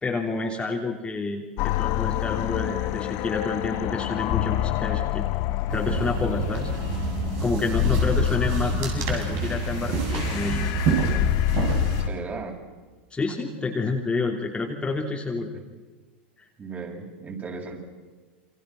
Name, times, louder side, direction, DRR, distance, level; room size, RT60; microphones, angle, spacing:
voice 1, 0.0-5.2 5.7-6.7 7.4-10.7 13.1-15.5, left 3 dB, 15° left, 0 dB, 3.3 m, -29 dB
sound 1, 1.6-12.1, left 16 dB, 55° left, 1.1 m, -27 dB
sound 2, 5.7-12.0, right 4 dB, 55° right, 7.9 m, -28 dB
voice 2, 12.0-12.5 15.5-15.6 16.6-17.8, right 4 dB, 25° right, 0 dB, 7.8 m, -36 dB
28.5 x 26.5 x 6.1 m, 1.3 s
hypercardioid pair, 95°, 6 cm